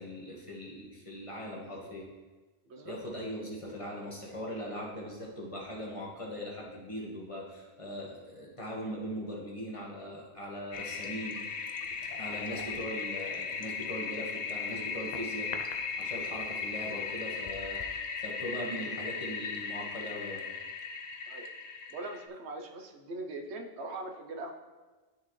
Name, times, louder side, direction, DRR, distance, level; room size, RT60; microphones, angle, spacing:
voice 1, 0.0-2.1 2.8-11.4 12.2-15.5 16.0-20.4, equal, 30° left, -3 dB, 1.4 m, -40 dB
Toilet flush, 10.7-22.3, left 5 dB, 45° left, 0.6 m, -37 dB
voice 2, 21.9-24.5, right 2 dB, 80° right, 3 dB, 1.1 m, -41 dB
13.0 x 4.4 x 3.1 m, 1.3 s
omnidirectional pair, 1.1 m